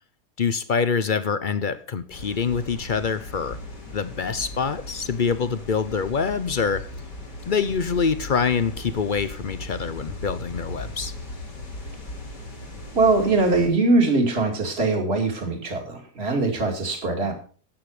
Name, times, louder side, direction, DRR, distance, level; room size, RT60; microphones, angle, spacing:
voice 1, 0.4-3.6 3.9-6.9 7.5-11.1, left 5 dB, 50° left, 0.6 m, -25 dB
sound 1, 2.1-13.7, left 2 dB, 85° left, 4.2 m, -38 dB
voice 2, 12.9-17.3, right 3 dB, 40° right, 2.8 m, -22 dB
13.0 x 8.8 x 4.9 m
omnidirectional pair, 1.8 m